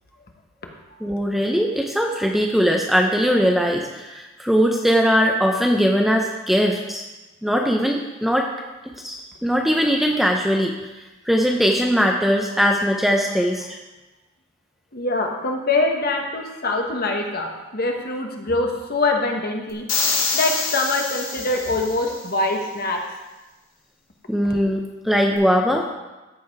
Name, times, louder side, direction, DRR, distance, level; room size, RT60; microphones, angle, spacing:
voice 1, 1.0-7.0 7.4-8.5 9.0-10.7 11.3-13.8 24.3-25.9, equal, ahead, 1 dB, 0.5 m, -20 dB
voice 2, 14.9-19.9 20.3-23.1, left 2 dB, 45° left, 2 dB, 1.2 m, -24 dB
sound 1, 19.9-22.2, left 4 dB, 65° left, 2.6 m, -25 dB
14.0 x 4.9 x 4.7 m, 1.1 s
head